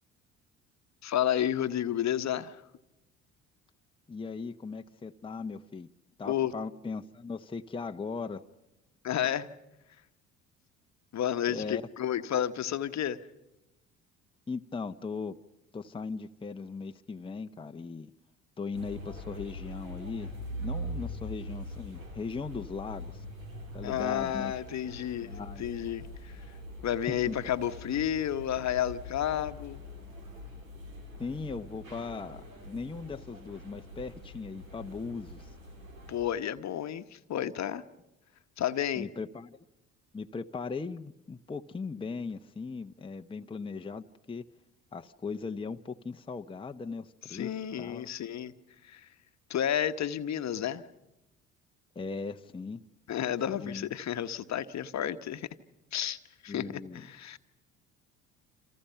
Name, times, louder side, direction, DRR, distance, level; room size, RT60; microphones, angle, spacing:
voice 1, 1.0-2.6 6.2-6.5 9.0-9.5 11.1-13.2 23.8-25.3 25.6-26.3 26.8-29.8 36.1-37.8 38.6-39.1 47.3-48.5 48.8-49.1 49.5-50.8 53.1-55.5 55.9-56.2 56.4-57.4, left 10 dB, 45° left, 10 dB, 1.1 m, -31 dB
voice 2, 4.1-5.9 6.2-8.4 11.5-11.9 14.5-15.3 15.7-18.1 18.6-20.3 20.6-23.3 23.7-24.5 25.2-25.7 27.1-27.4 31.2-35.5 39.0-39.6 40.1-44.4 44.9-48.1 51.9-52.8 53.5-53.9 56.5-57.0, left 4 dB, 15° left, 6 dB, 0.8 m, -38 dB
sound 1, 18.7-36.2, equal, 85° right, 2.7 m, -43 dB
28.5 x 27.0 x 5.7 m, 0.95 s
hypercardioid pair, 55°, 39 cm